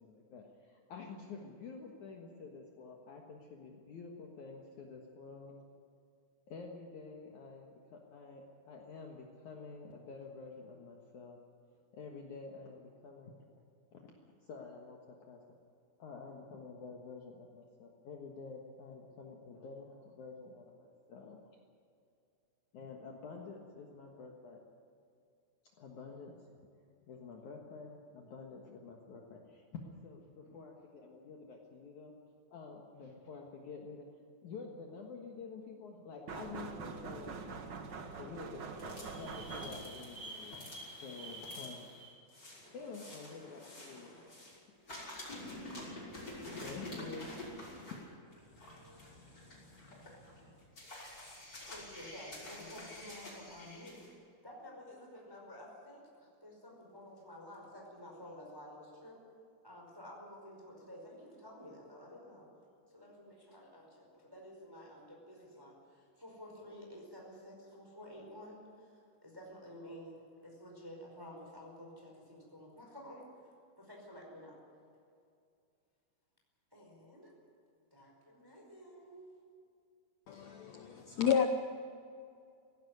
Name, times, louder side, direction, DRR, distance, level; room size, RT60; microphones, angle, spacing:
voice 1, 0.0-5.6 6.5-11.4 11.9-13.5 13.9-15.4 16.0-21.4 22.7-24.6 25.8-26.5 27.1-32.1 32.5-34.1 34.4-37.6 38.2-40.6 41.0-41.9 42.7-44.1 46.6-47.3, left 4 dB, 60° left, 0 dB, 2.7 m, -49 dB
sound 1, 36.3-40.1, right 5 dB, 80° right, 0.9 m, -44 dB
sound 2, 38.7-44.6 44.9-54.1, left 1 dB, 25° left, 6.4 m, -48 dB
voice 2, 51.2-54.0 54.4-59.2 59.6-62.5 62.9-73.3 73.8-74.6 76.7-77.3 77.9-79.3, equal, 5° right, -1 dB, 4.5 m, -52 dB
voice 3, 80.3-81.5, left 8 dB, 75° left, 6 dB, 1.6 m, -31 dB
18.0 x 16.5 x 9.7 m, 2.4 s
omnidirectional pair, 4.4 m